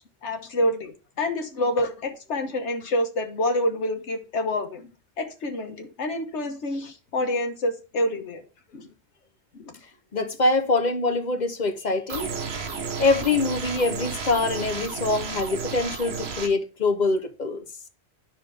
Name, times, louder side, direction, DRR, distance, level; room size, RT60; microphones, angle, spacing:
voice 1, 0.2-4.9 5.2-8.4 8.7-8.9 9.5-9.7, left 1 dB, 85° left, 1.4 m, -27 dB
voice 2, 10.1-12.3 13.0-17.6, left 3 dB, 45° left, 0.9 m, -24 dB
sound 1, 12.1-16.5, right 5 dB, 65° right, 1.3 m, -32 dB
9.9 x 5.9 x 3.4 m
omnidirectional pair, 1.2 m